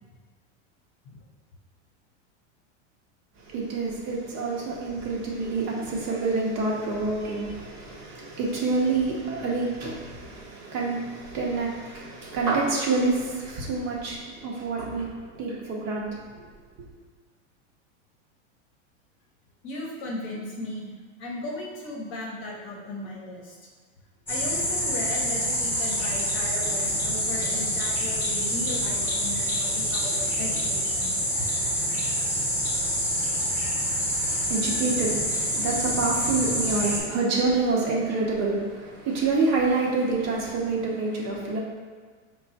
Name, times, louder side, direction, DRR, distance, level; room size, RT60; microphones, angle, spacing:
voice 1, 3.4-16.5 16.8-16.9 34.3-41.6, right 3 dB, 40° right, -3 dB, 0.9 m, -27 dB
voice 2, 19.6-20.9 21.2-23.5 24.3-31.1, left 1 dB, 35° left, -2 dB, 0.9 m, -36 dB
sound 1, 24.3-37.0, equal, 5° left, 1.0 m, -27 dB
4.6 x 2.3 x 4.0 m, 1.6 s
supercardioid pair, 145°, 36 cm